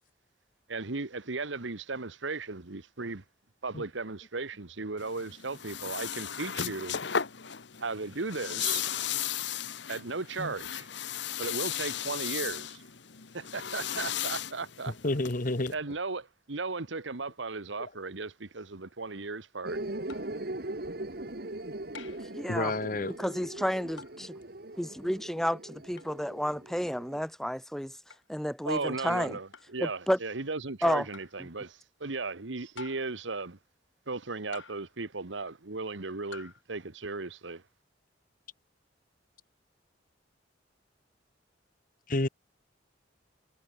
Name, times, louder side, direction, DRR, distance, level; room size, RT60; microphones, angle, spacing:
voice 1, 0.7-3.2 3.6-7.0 7.8-8.9 9.5-9.6 9.9-10.9 11.4-12.8 13.3-15.0 15.7-19.8 28.6-33.6 34.1-37.6, right 3 dB, 80° right, 1.4 m, -36 dB
sound 1, 5.0-15.7, left 9 dB, 70° left, 1.2 m, -35 dB
voice 2, 15.0-15.7 22.5-23.1 42.1-42.3, left 2 dB, 45° left, 1.3 m, -29 dB
sound 2, 19.7-27.2, right 1 dB, 55° right, 1.8 m, -40 dB
sound 3, 20.1-20.4 21.9-22.3 24.0-24.3 26.0-26.2 28.1-28.3 29.5-29.8 31.1-31.4 32.8-33.2 34.5-35.0 36.3-36.6, left 5 dB, 90° left, 3.4 m, -48 dB
voice 3, 22.3-22.7 23.2-24.3 24.8-27.9 28.3-29.4 29.8-30.2 30.8-31.1, equal, ahead, 1.5 m, -31 dB
head